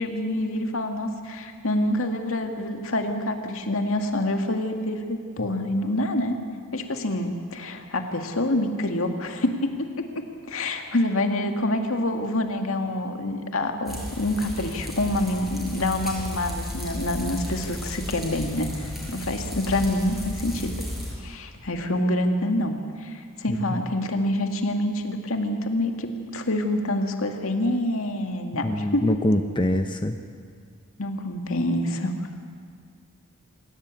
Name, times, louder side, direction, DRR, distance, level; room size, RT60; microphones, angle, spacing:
voice 1, 0.0-6.4 6.7-20.8 21.2-29.0 31.0-32.1, left 1 dB, 70° left, 4 dB, 2.1 m, -27 dB
sound 1, 13.9-21.1, left 1 dB, ahead, 5.8 m, -34 dB
voice 2, 23.5-23.8 28.6-30.2, left 1 dB, 20° left, 6 dB, 0.8 m, -24 dB
26.5 x 17.0 x 8.5 m, 2.1 s
head